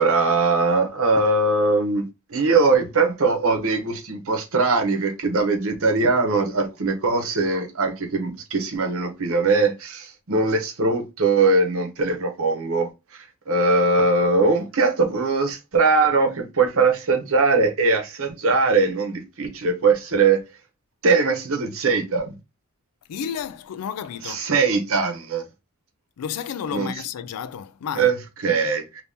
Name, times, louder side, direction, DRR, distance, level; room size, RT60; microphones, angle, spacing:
voice 1, 0.0-20.4 21.0-22.3 24.2-25.4 26.7-26.9 28.0-29.0, right 3 dB, 65° right, 0.8 m, -21 dB
voice 2, 23.1-24.4 26.2-28.1, left 8 dB, 90° left, 0.4 m, -31 dB
2.8 x 2.7 x 3.4 m
head